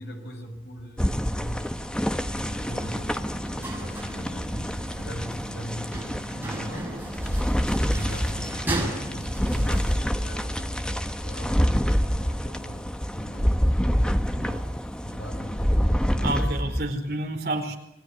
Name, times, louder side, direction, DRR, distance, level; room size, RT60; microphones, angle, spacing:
voice 1, 0.0-14.5 15.0-16.5, equal, 65° left, 4 dB, 6.1 m, -40 dB
sound 1, 1.0-16.9, equal, 5° left, 1.1 m, -27 dB
sound 2, 2.5-10.4, right 1 dB, 10° right, 6.9 m, -36 dB
voice 2, 14.3-14.7 16.2-17.8, right 2 dB, 55° right, 4 dB, 4.7 m, -30 dB
27.5 x 21.5 x 9.6 m, 0.80 s
head